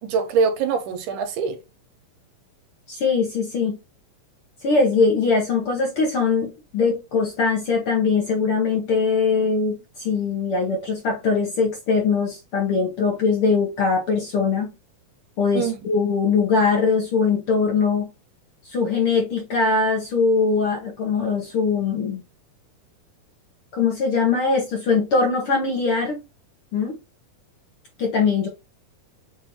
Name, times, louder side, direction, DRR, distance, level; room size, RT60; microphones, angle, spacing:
voice 1, 0.0-1.6 15.5-15.9, right 5 dB, 75° right, 2.3 m, -23 dB
voice 2, 2.9-3.8 4.6-14.7 15.4-18.1 18.6-22.2 23.7-26.2 26.7-27.0 28.0-28.5, left 4 dB, 65° left, 1.3 m, -21 dB
6.9 x 2.6 x 2.9 m
omnidirectional pair, 3.9 m